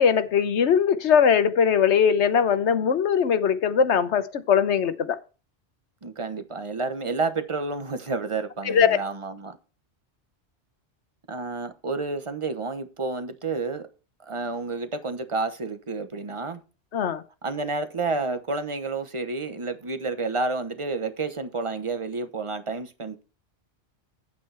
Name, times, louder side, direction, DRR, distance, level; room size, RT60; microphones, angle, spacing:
voice 1, 0.0-5.2 8.7-9.0 16.9-17.2, left 7 dB, 80° left, 1.2 m, -20 dB
voice 2, 6.0-9.6 11.3-13.9 14.2-16.6 17.4-23.2, right 3 dB, 30° right, 1.1 m, -30 dB
9.4 x 8.6 x 3.4 m
omnidirectional pair, 1.2 m